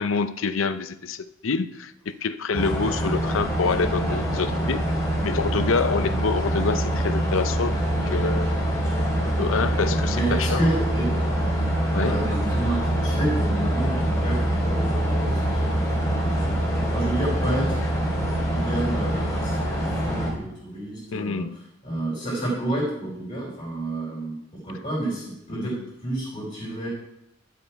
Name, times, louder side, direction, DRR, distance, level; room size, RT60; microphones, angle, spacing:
voice 1, 0.0-1.9 2.2-4.8 5.2-7.8 8.1-8.6 9.4-10.6 11.9-12.2 21.1-21.6 25.5-25.8, left 4 dB, 80° left, 12 dB, 0.6 m, -26 dB
sound 1, 2.5-20.3, right 1 dB, 15° left, 3.3 m, -24 dB
voice 2, 10.1-11.1 11.9-16.5 16.9-17.8 18.5-21.5 21.8-24.4 24.6-25.7 26.0-26.9, right 1 dB, 35° left, -7 dB, 5.1 m, -30 dB
12.0 x 7.4 x 4.7 m, 0.79 s
head